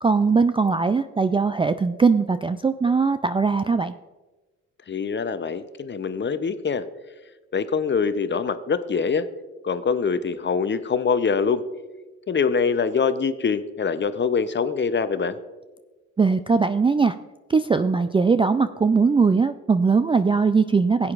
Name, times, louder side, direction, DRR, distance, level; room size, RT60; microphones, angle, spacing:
voice 1, 0.0-3.9 16.2-17.1 17.5-21.1, right 4 dB, 15° right, 11 dB, 0.3 m, -20 dB
voice 2, 4.9-6.9 7.5-9.3 9.6-11.6 12.3-15.4, left 5 dB, 30° left, 12 dB, 0.7 m, -24 dB
16.0 x 8.4 x 2.5 m, 1.2 s
hypercardioid pair, 50°, 36 cm